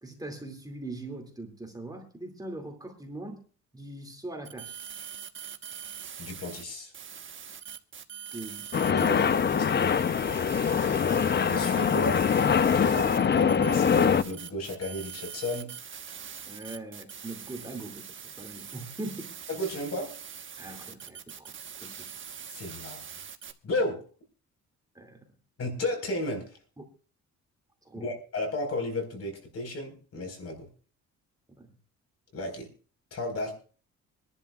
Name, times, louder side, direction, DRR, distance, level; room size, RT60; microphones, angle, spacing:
voice 1, 0.0-3.4 3.7-4.8 8.3-8.7 8.9-9.3 10.3-10.6 12.9-13.2 16.4-18.1 18.4-19.3 20.6-21.5 21.8-22.1 24.9-25.2 27.8-28.1 31.6-31.7, right 2 dB, 10° right, 3 dB, 2.4 m, -41 dB
sound 1, 4.5-6.6 6.9-23.5, right 7 dB, 40° right, 1.2 m, -43 dB
voice 2, 6.2-6.9 8.9-9.7 11.5-12.2 12.7-15.7 19.5-20.1 22.5-23.0 23.6-24.0 25.6-26.5 28.0-30.7 32.3-32.7 33.1-33.5, left 1 dB, 55° left, 4 dB, 4.7 m, -33 dB
sound 2, 8.7-14.2, left 7 dB, 35° left, 0.7 m, -23 dB
25.0 x 11.0 x 2.4 m, 0.39 s
cardioid pair, 90°, 30 cm